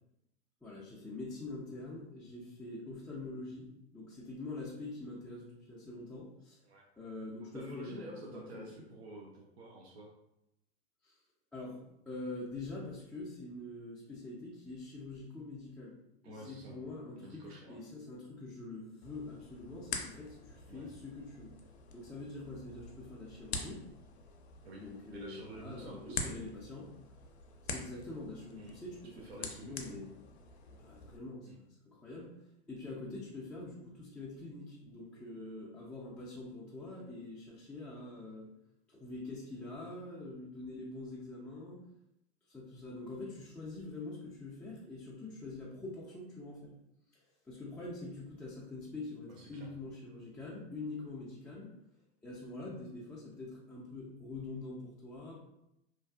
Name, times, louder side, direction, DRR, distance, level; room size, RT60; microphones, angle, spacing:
voice 1, 0.6-6.6 7.0-8.7 11.0-11.2 11.5-16.0 16.2-21.5 21.9-23.8 24.8-26.9 27.7-30.2 30.8-32.3 32.7-38.5 38.9-41.8 42.5-46.7 47.1-51.7 52.2-55.4, left 2 dB, 5° left, -8 dB, 0.3 m, -45 dB
voice 2, 7.5-10.1 16.2-16.8 17.2-17.8 20.7-20.9 24.6-24.8 25.1-26.3 28.5-28.8 29.2-30.0 31.5-31.6 49.3-49.7, right 1 dB, 80° right, -2 dB, 0.6 m, -49 dB
sound 1, 19.0-31.2, left 4 dB, 85° left, 0.5 m, -46 dB
2.6 x 2.3 x 2.3 m, 0.84 s
hypercardioid pair, 95°, 32 cm